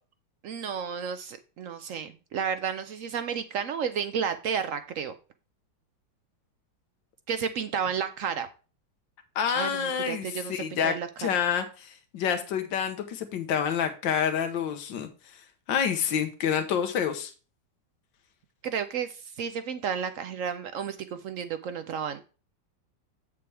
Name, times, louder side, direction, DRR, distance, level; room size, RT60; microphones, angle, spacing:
voice 1, 0.4-5.1 7.3-8.5 9.5-11.3 18.6-22.2, right 7 dB, 70° right, 10 dB, 0.8 m, -32 dB
voice 2, 9.4-15.1 15.7-17.3, left 8 dB, 90° left, 7 dB, 1.6 m, -28 dB
8.3 x 6.7 x 3.3 m, 0.34 s
omnidirectional pair, 1.9 m